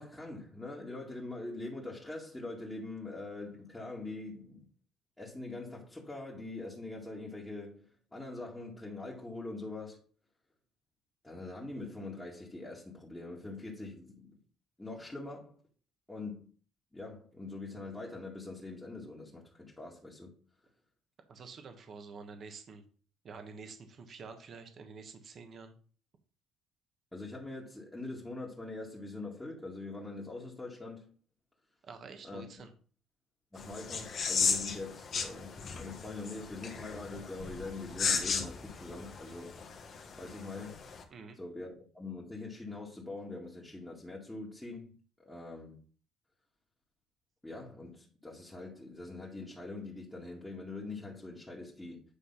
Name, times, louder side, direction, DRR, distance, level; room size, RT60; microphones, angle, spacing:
voice 1, 0.0-4.6 5.2-10.0 11.2-14.3 14.8-15.6 16.1-16.5 16.9-20.3 27.1-31.1 32.2-32.5 33.5-39.5 40.2-40.8 41.4-44.9 45.3-45.8 47.4-52.0, left 2 dB, 10° left, 1.9 m, -43 dB
voice 2, 21.3-22.8 23.2-25.8 31.8-32.7 41.1-41.4, right 4 dB, 50° right, 1.4 m, -48 dB
sound 1, 33.6-41.0, left 5 dB, 50° left, 1.4 m, -36 dB
8.5 x 3.3 x 5.6 m
supercardioid pair, 85°, 0 cm